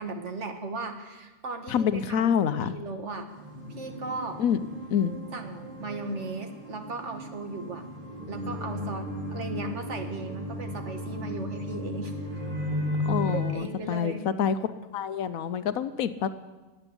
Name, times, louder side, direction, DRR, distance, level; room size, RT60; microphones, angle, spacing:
voice 1, 0.0-3.3 3.8-4.4 5.3-7.8 8.3-12.1 13.3-14.3, right 3 dB, 60° right, 6 dB, 1.7 m, -37 dB
voice 2, 1.7-2.7 4.4-4.6 4.9-5.2 13.1-14.6 14.9-16.3, left 8 dB, 80° left, 12 dB, 1.2 m, -27 dB
sound 1, 3.3-13.5, left 1 dB, 40° right, 2.7 m, -35 dB
13.0 x 8.9 x 9.9 m, 1.2 s
omnidirectional pair, 1.4 m